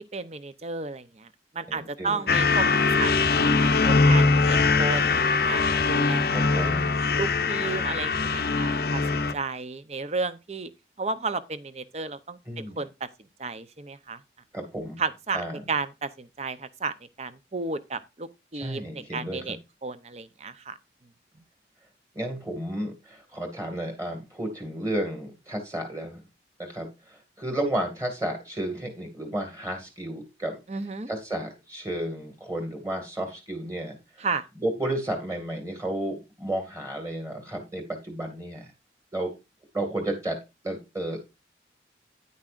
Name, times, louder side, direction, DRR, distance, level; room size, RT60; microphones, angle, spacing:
voice 1, 0.1-1.3 1.5-2.7 3.0-5.2 5.5-6.2 7.2-10.7 11.0-12.9 13.4-14.2 15.0-19.6 19.8-20.8 30.7-31.1 34.2-34.4, right 4 dB, 35° right, 0.7 m, -33 dB
voice 2, 1.7-2.3 6.3-6.9 12.5-12.8 14.5-15.0 15.3-15.6 18.5-19.6 22.1-26.2 26.6-30.6 31.1-34.3 34.6-38.7 39.1-39.3 39.7-41.2, right 1 dB, 15° right, 2.0 m, -32 dB
sound 1, 2.3-9.3, left 4 dB, 55° left, 0.6 m, -22 dB
9.9 x 9.4 x 2.5 m
head